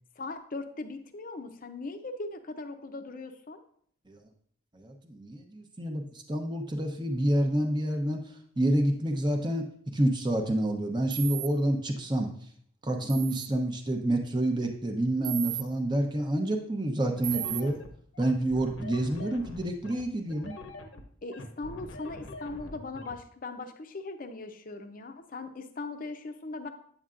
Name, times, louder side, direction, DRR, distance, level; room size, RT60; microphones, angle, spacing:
voice 1, 0.2-3.6 21.2-26.7, left 3 dB, 45° left, 7 dB, 0.6 m, -39 dB
voice 2, 4.7-12.3 12.8-17.8 18.2-20.5, right 1 dB, 20° right, 3 dB, 0.8 m, -28 dB
sound 1, 11.1-11.5 13.1-13.5 15.2-15.6 17.2-17.6, right 16 dB, 65° right, 0.3 m, -34 dB
sound 2, 17.2-23.2, left 2 dB, 70° left, 0.8 m, -44 dB
8.6 x 7.8 x 2.5 m, 0.62 s
head